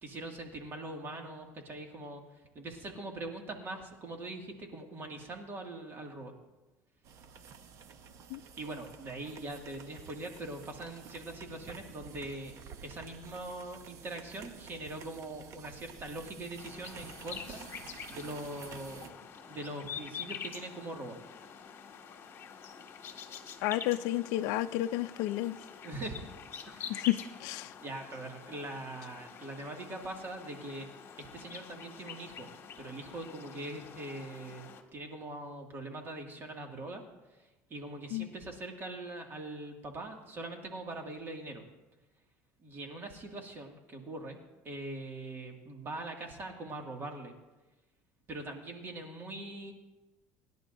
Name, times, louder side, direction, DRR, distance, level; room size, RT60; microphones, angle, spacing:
voice 1, 0.0-2.2 2.5-6.3 8.6-12.6 12.8-17.6 18.1-19.1 19.5-21.2 25.8-26.4 26.7-27.1 27.8-30.9 31.2-32.5 32.8-37.0 37.7-41.6 42.6-44.4 44.6-47.3 48.3-49.7, right 2 dB, 35° right, 2 dB, 2.1 m, -42 dB
sound 1, 7.0-19.1, right 6 dB, 55° right, 1.1 m, -51 dB
sound 2, 16.6-34.8, left 7 dB, 40° left, 1.9 m, -47 dB
voice 2, 23.6-25.6 26.9-27.7 38.1-38.3, left 15 dB, 75° left, 9 dB, 0.4 m, -31 dB
26.0 x 11.0 x 2.6 m, 1.1 s
supercardioid pair, 110°, 7 cm